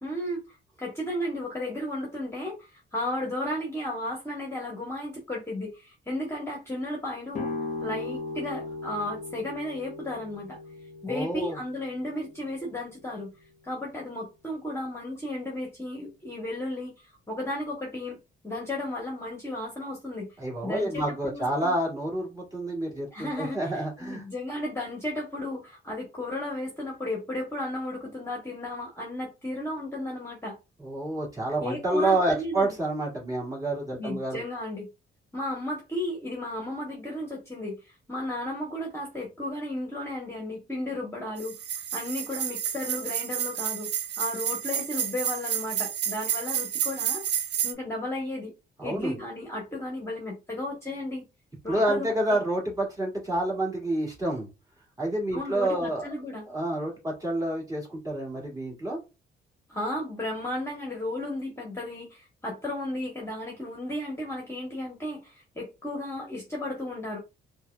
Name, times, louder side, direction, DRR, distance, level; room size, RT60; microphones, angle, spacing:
voice 1, 0.0-7.5 7.8-10.6 11.0-13.3 13.6-18.2 18.4-20.3 20.6-21.7 23.1-30.6 31.6-32.7 33.9-34.9 35.3-41.5 41.9-43.9 44.2-48.5 48.8-51.2 51.6-52.4 55.3-56.4 59.7-67.2, left 1 dB, 15° left, 1.0 m, -34 dB
sound 1, 7.3-13.1, left 3 dB, 40° left, 0.6 m, -38 dB
voice 2, 11.1-11.6 20.4-24.2 30.8-34.4 48.8-49.2 51.7-54.5 55.0-56.1 56.5-59.0, right 1 dB, 15° right, 1.9 m, -28 dB
sound 2, 41.4-47.7, right 9 dB, 60° right, 0.5 m, -30 dB
4.5 x 2.2 x 2.2 m
cardioid pair, 90°, 20 cm